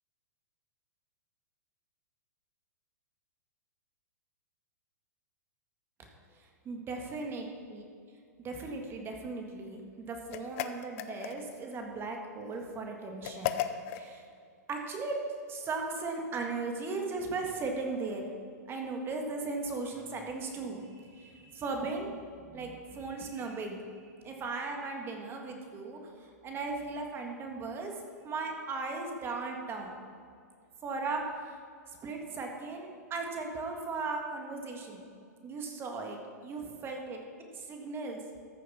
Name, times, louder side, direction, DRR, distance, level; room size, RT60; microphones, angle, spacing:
voice 1, 6.6-7.8 8.4-13.5 13.9-14.2 14.7-15.1 15.5-18.3 18.7-22.1 22.4-23.8 24.2-27.9 28.2-30.0 30.8-31.2 32.0-35.0 35.4-37.2 37.5-38.2, right 3 dB, 25° right, 2 dB, 1.7 m, -37 dB
sound 1, 10.3-11.6 13.2-14.1, left 11 dB, 50° left, 0.7 m, -35 dB
14.0 x 6.4 x 5.7 m, 2.3 s
hypercardioid pair, 115°, 9 cm